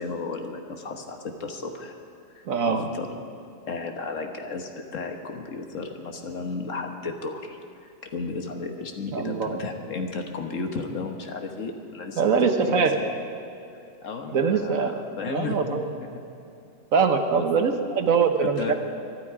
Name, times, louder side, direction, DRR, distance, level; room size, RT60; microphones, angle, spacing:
voice 1, 0.0-1.9 2.3-3.2 3.7-12.9 14.0-16.2 17.3-17.5 18.4-18.7, left 4 dB, 50° left, 4 dB, 1.5 m, -34 dB
voice 2, 2.5-2.8 9.1-9.6 12.2-12.9 14.3-14.9 15.3-15.9 16.9-18.7, right 5 dB, 55° right, 6 dB, 1.3 m, -23 dB
23.0 x 11.5 x 4.8 m, 2.7 s
omnidirectional pair, 1.9 m